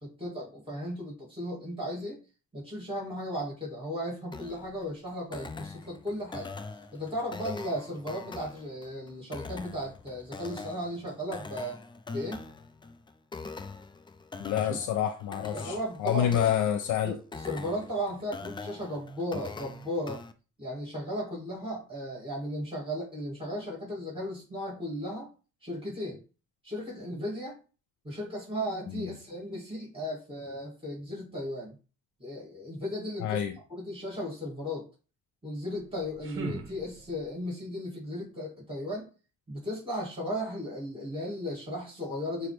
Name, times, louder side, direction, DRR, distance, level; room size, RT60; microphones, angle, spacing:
voice 1, 0.0-2.2 2.5-6.5 6.9-11.8 12.1-12.4 14.6-14.8 15.5-16.4 17.0-20.2 20.6-25.3 25.6-26.2 26.6-27.5 28.0-31.8 32.2-33.4 33.7-34.9 35.4-39.1 39.5-42.5, equal, 20° right, 2.3 m, -36 dB
sound 1, 4.3-20.3, left 4 dB, 15° left, 0.3 m, -43 dB
voice 2, 14.4-17.2 28.9-29.1 33.2-33.6, left 10 dB, 80° left, 0.5 m, -28 dB
sound 2, 35.7-37.4, right 3 dB, 45° right, 0.9 m, -41 dB
5.8 x 2.0 x 3.3 m
cardioid pair, 90°, 30 cm